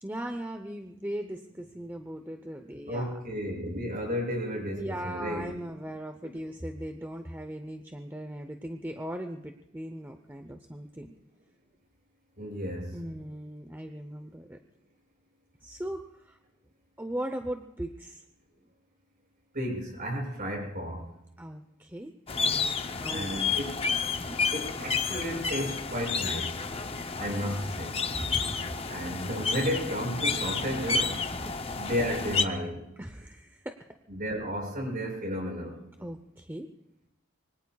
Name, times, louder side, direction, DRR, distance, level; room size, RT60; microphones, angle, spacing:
voice 1, 0.0-3.2 4.7-11.1 12.9-14.6 15.6-16.4 17.0-18.2 21.4-23.5 24.2-24.4 28.1-28.7 31.3-31.7 33.0-33.8 36.0-36.7, right 1 dB, 10° right, 5 dB, 0.7 m, -39 dB
voice 2, 2.9-5.4 12.4-13.0 19.5-21.1 23.1-23.8 24.5-26.6 27.2-28.0 28.9-31.2 31.8-32.8 34.1-35.8, equal, 40° right, 0 dB, 7.2 m, -33 dB
sound 1, 22.3-32.4, left 4 dB, 25° left, 0.7 m, -31 dB
26.0 x 23.5 x 2.4 m, 0.85 s
head